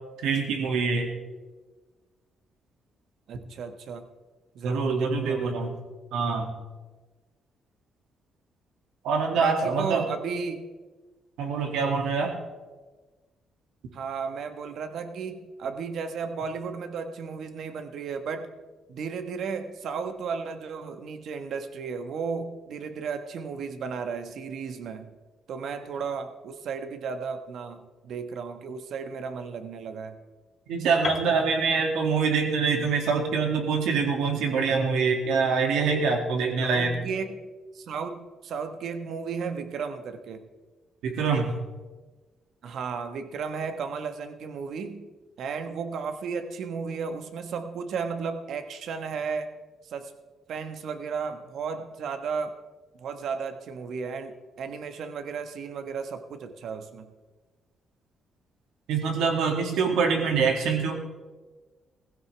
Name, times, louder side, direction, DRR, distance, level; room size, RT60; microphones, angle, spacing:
voice 1, 0.2-1.1 4.6-5.7 6.1-6.5 9.0-10.1 11.4-12.4 30.7-37.0 41.0-41.5 58.9-61.0, right 5 dB, 90° right, 2 dB, 2.3 m, -25 dB
voice 2, 3.3-4.1 4.5-5.6 9.3-10.7 13.9-18.5 18.9-25.2 25.5-30.2 36.6-37.4 37.7-40.5 42.6-45.1 45.4-49.5 49.8-50.1 50.5-52.5 52.9-57.1, right 5 dB, 70° right, 8 dB, 1.2 m, -34 dB
Piano, 31.0-35.0, left 4 dB, 35° left, 1.5 m, -39 dB
16.0 x 15.5 x 3.4 m, 1.3 s
cardioid pair, 90°, 0 cm